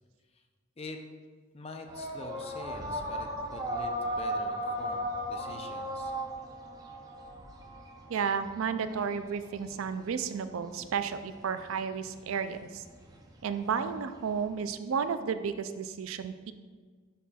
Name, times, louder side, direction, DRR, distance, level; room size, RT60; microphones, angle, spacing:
voice 1, 1.5-6.1, left 2 dB, 30° left, 4 dB, 0.5 m, -45 dB
sound 1, 1.9-14.7, equal, 20° right, 0.5 m, -37 dB
voice 2, 8.1-12.8 13.4-16.5, right 6 dB, 85° right, 10 dB, 0.4 m, -32 dB
10.5 x 4.1 x 2.3 m, 1.5 s
head